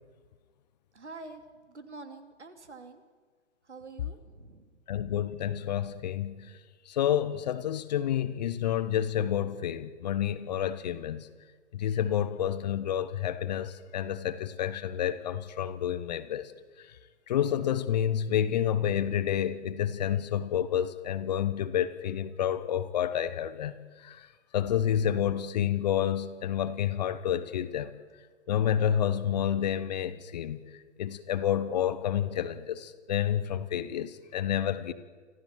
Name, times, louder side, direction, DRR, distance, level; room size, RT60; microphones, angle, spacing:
voice 1, 0.9-1.4 1.7-3.0 3.7-4.6, right 3 dB, 70° right, 2.9 m, -46 dB
voice 2, 4.9-6.5 6.9-11.3 11.7-16.5 17.3-24.3 24.5-27.9 28.5-30.6 31.0-34.9, left 10 dB, 35° left, 1.1 m, -29 dB
25.5 x 15.5 x 7.6 m
figure-of-eight pair, 125°, 36 cm